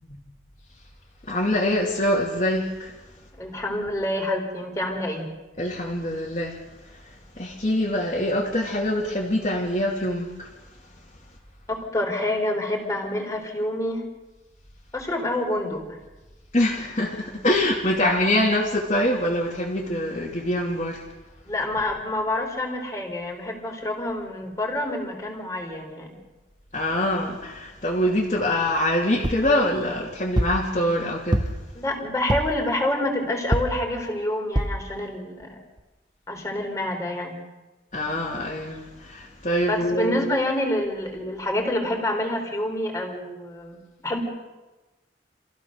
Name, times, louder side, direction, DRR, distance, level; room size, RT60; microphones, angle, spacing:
voice 1, 1.3-2.9 5.6-6.6 7.4-10.5 16.5-21.0 26.7-31.5 37.9-40.2, left 1 dB, 40° left, -4 dB, 2.8 m, -24 dB
voice 2, 3.4-5.3 11.7-14.1 14.9-16.0 21.5-26.2 31.7-35.6 36.3-37.4 39.7-44.2, left 1 dB, 15° left, 2 dB, 3.8 m, -27 dB
sound 1, 29.2-29.5 30.4-30.7 31.3-31.7 32.3-32.6 33.5-33.9 34.6-34.8 35.4-35.5 35.8-35.9, right 1 dB, 25° right, 0.9 m, -24 dB
27.5 x 15.5 x 6.6 m, 1.1 s
head